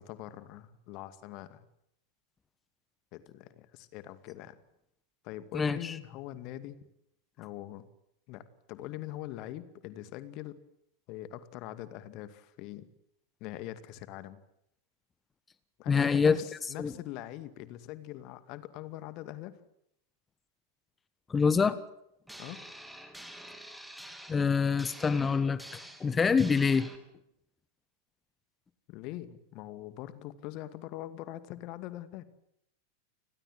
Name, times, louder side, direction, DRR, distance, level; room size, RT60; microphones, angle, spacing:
voice 1, 0.0-1.7 3.1-4.6 5.2-6.8 7.4-7.9 8.3-8.4 8.7-10.6 11.1-12.9 13.4-14.4 15.8-19.6 22.4-22.6 28.9-32.2, left 14 dB, 40° left, 13 dB, 2.3 m, -42 dB
voice 2, 5.5-5.9 15.9-16.4 16.8-16.9 21.3-21.8 24.3-25.6 26.0-26.9, left 5 dB, 15° left, 16 dB, 1.4 m, -25 dB
sound 1, 22.3-27.0, right 1 dB, 5° right, 3.6 m, -48 dB
30.0 x 20.5 x 7.8 m, 0.77 s
figure-of-eight pair, 90°, 0 cm